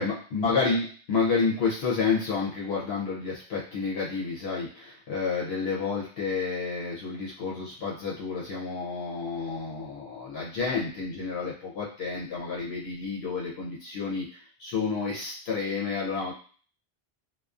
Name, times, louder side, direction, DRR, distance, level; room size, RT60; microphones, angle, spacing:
voice 1, 0.0-16.3, left 4 dB, 75° left, -5 dB, 0.8 m, -30 dB
2.4 x 2.3 x 2.3 m, 0.42 s
omnidirectional pair, 1.1 m